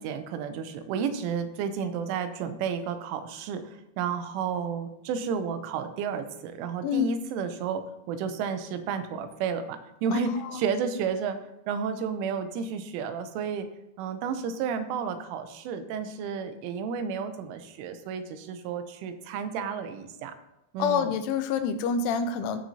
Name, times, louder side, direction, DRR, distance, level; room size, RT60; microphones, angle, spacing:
voice 1, 0.0-11.4 11.7-13.7 14.0-20.4 20.7-21.2, right 6 dB, 85° right, 9 dB, 3.3 m, -32 dB
voice 2, 20.8-22.6, left 6 dB, 85° left, 9 dB, 3.2 m, -26 dB
16.0 x 6.0 x 2.8 m, 0.86 s
omnidirectional pair, 5.5 m